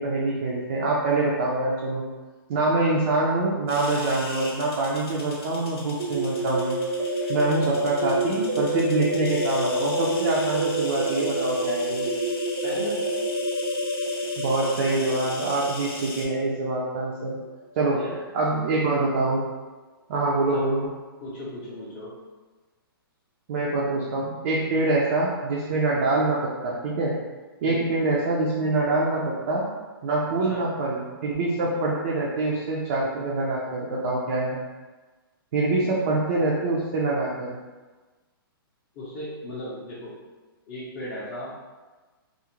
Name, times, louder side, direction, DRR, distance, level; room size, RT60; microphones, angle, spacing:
voice 1, 0.0-2.0 2.5-6.8 7.3-12.1 14.4-17.4 17.7-18.0 18.3-19.5 20.1-20.9 23.5-27.1 27.6-29.6 30.0-34.6 35.5-37.6, right 2 dB, 40° right, -5 dB, 0.4 m, -25 dB
sound 1, 3.7-16.2, left 2 dB, 85° left, 0.8 m, -39 dB
sound 2, 6.0-17.7, right 1 dB, 75° right, 0.7 m, -28 dB
voice 2, 12.6-13.0 17.9-18.2 18.5-18.6 20.5-20.6 21.2-22.1 24.7-24.8 27.6-27.8 30.5-30.7 31.6-31.7 35.8-35.9 38.9-40.1 40.7-41.5, left 1 dB, 25° left, -9 dB, 0.5 m, -36 dB
2.4 x 2.0 x 3.0 m, 1.3 s
hypercardioid pair, 160°, 13 cm